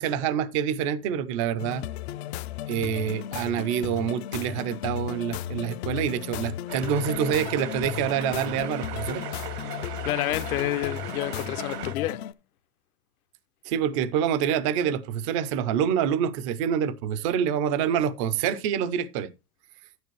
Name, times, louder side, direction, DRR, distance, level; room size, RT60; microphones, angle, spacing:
voice 1, 0.0-1.8 2.7-9.2 13.6-19.3, right 8 dB, 20° right, 0.4 m, -26 dB
sound 1, 1.6-12.3, left 12 dB, 45° left, 0.5 m, -35 dB
sound 2, 6.7-11.9, right 11 dB, 75° right, 1.2 m, -38 dB
voice 2, 10.0-12.2, left 15 dB, 65° left, 0.9 m, -29 dB
10.0 x 9.4 x 3.1 m
supercardioid pair, 150°, 47 cm